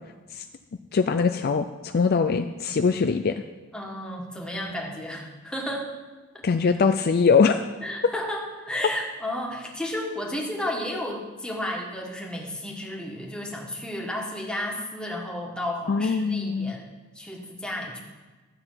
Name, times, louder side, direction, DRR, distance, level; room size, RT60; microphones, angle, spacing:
voice 1, 0.9-3.4 6.4-7.6 15.9-16.7, left 5 dB, 45° left, 8 dB, 0.4 m, -22 dB
voice 2, 3.7-5.9 6.3-6.4 7.8-16.8 17.2-18.0, left 1 dB, 5° left, -1 dB, 1.6 m, -32 dB
13.0 x 7.9 x 5.8 m, 1.3 s
head